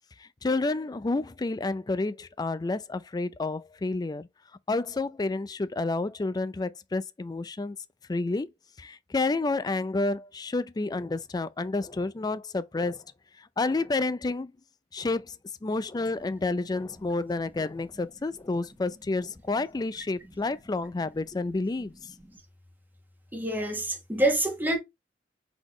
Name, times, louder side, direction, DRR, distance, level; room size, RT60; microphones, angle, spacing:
voice 1, 0.2-4.3 4.7-7.8 8.1-8.5 8.8-13.0 13.4-14.5 14.9-15.4 15.6-21.9, left 3 dB, 25° left, 0.4 m, -30 dB
voice 2, 23.3-24.8, right 1 dB, 10° right, 1.3 m, -26 dB
4.0 x 3.9 x 3.0 m
head